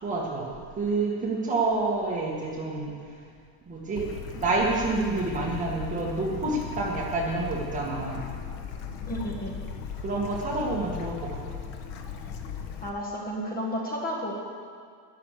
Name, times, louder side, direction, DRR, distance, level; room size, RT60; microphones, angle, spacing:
voice 1, 0.0-0.5 0.8-2.9 3.7-4.0 4.3-8.3 10.0-11.6, right 3 dB, 15° right, -4 dB, 2.2 m, -28 dB
Bird / Stream, 4.0-12.9, left 6 dB, 70° left, 1.6 m, -37 dB
voice 2, 9.1-9.5 12.8-14.4, equal, 20° left, -2 dB, 1.8 m, -32 dB
12.5 x 11.5 x 6.8 m, 2.1 s
cardioid pair, 170°, 44 cm